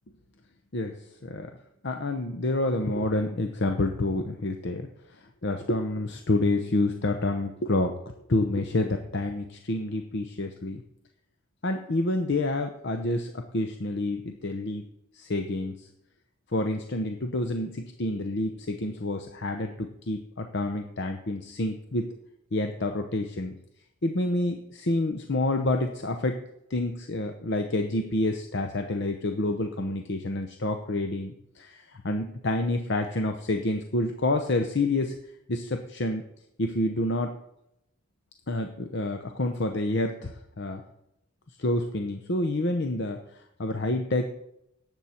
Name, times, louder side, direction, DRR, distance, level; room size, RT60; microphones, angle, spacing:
voice 1, 1.8-8.0 8.3-10.8 11.6-14.8 15.1-15.9 16.5-22.1 22.5-23.5 24.0-26.4 26.7-35.2 35.5-36.2 36.6-37.4 38.5-40.8 41.6-44.2, left 2 dB, 55° left, 5 dB, 0.8 m, -28 dB
17.5 x 8.0 x 4.4 m, 0.82 s
head